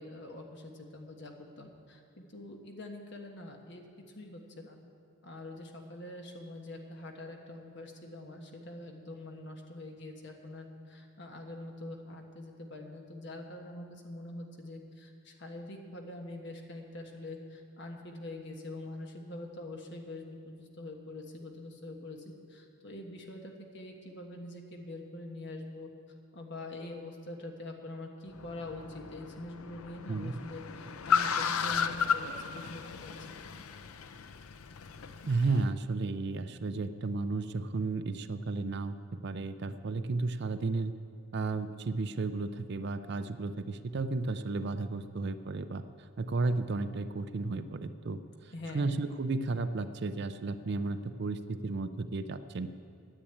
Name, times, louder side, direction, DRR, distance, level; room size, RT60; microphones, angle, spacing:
voice 1, 0.0-3.8 4.1-4.8 5.2-25.9 26.3-33.4 48.5-49.0, left 2 dB, 55° left, 2 dB, 1.3 m, -44 dB
Car, 28.3-35.7, left 6 dB, 85° left, 0.6 m, -34 dB
voice 2, 30.1-30.4 35.3-39.0 39.2-41.0 41.3-45.8 46.2-48.2 48.4-52.7, right 3 dB, 50° right, 11 dB, 0.4 m, -33 dB
10.0 x 8.6 x 8.6 m, 2.5 s
head